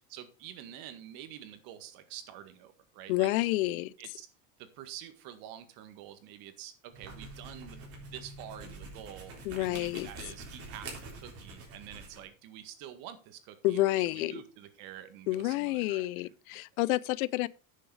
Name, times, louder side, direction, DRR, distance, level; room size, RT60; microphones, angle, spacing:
voice 1, 0.0-3.3 3.7-4.3 4.6-7.8 8.1-16.6, right 11 dB, 55° right, 1.8 m, -48 dB
voice 2, 3.1-3.9 9.5-10.1 13.6-14.4 15.3-17.5, left 17 dB, 85° left, 0.7 m, -29 dB
sound 1, 6.9-12.3, right 2 dB, 35° right, 3.8 m, -46 dB
10.0 x 6.8 x 4.8 m
supercardioid pair, 150°, 41 cm